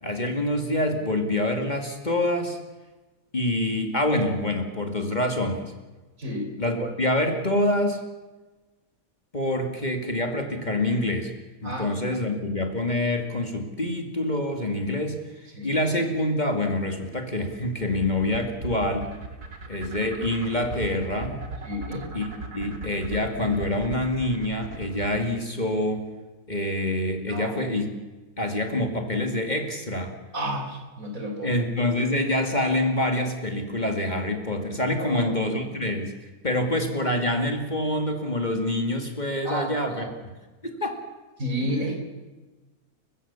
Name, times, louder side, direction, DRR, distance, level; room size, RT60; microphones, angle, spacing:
voice 1, 0.0-2.6 3.3-5.7 6.6-8.0 9.3-11.3 11.6-19.1 19.6-21.4 22.1-22.3 22.5-26.1 26.5-27.9 28.4-30.1 31.4-36.1 36.4-40.0 40.6-41.0 41.6-41.7, left 1 dB, 30° left, 4 dB, 2.4 m, -26 dB
voice 2, 6.2-6.5 11.6-12.2 15.5-15.7 21.6-22.1 27.3-27.5 30.3-31.6 35.0-35.3 39.4-40.1 41.4-42.0, equal, 60° right, 3 dB, 4.2 m, -31 dB
sound 1, 17.0-25.2, right 3 dB, 80° right, 2.9 m, -37 dB
29.5 x 15.5 x 7.2 m, 1.2 s
omnidirectional pair, 1.6 m